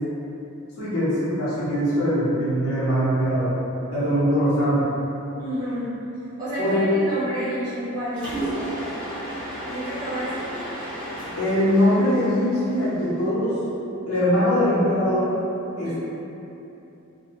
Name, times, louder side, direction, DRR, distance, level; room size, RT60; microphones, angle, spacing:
voice 1, 0.8-3.5 3.9-4.9 6.6-6.9 11.4-13.6 14.1-15.3 15.8-16.0, equal, 85° left, -11 dB, 1.0 m, -22 dB
voice 2, 5.4-5.9 6.4-8.6 9.6-10.5 15.8-16.0, equal, 20° right, -13 dB, 0.6 m, -30 dB
Mechanisms, 8.1-13.3, right 1 dB, 5° left, 0.9 m, -33 dB
2.6 x 2.2 x 2.9 m, 3.0 s
head